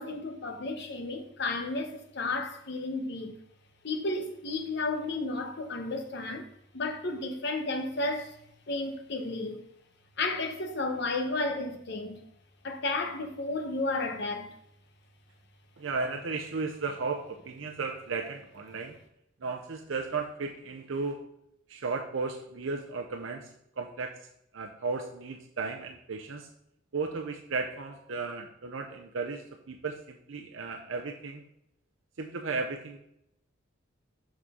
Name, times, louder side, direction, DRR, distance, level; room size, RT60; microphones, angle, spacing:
voice 1, 0.0-3.3 3.8-6.5 6.7-8.4 8.7-9.6 10.2-12.2 12.6-14.5, left 2 dB, 60° left, 0.9 m, -32 dB
voice 2, 15.8-19.0 19.4-21.2 21.7-23.5 23.8-24.2 24.5-26.5 26.9-31.4 32.2-33.0, right 4 dB, 75° right, 0.6 m, -35 dB
6.3 x 6.2 x 3.6 m
head